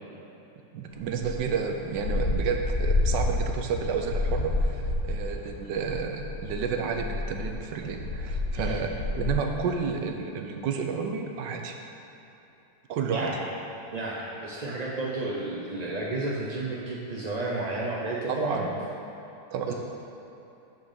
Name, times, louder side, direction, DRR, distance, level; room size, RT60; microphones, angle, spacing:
voice 1, 0.7-11.7 12.9-13.3 18.3-18.7 19.5-19.7, right 6 dB, 85° right, 4 dB, 1.4 m, -31 dB
sound 1, 1.1-9.6, left 2 dB, 60° left, 2.0 m, -29 dB
voice 2, 8.5-8.9 13.1-13.4 13.9-18.8 19.7-19.8, right 2 dB, 70° right, -3 dB, 0.4 m, -32 dB
6.6 x 5.8 x 5.7 m, 3.0 s
omnidirectional pair, 1.9 m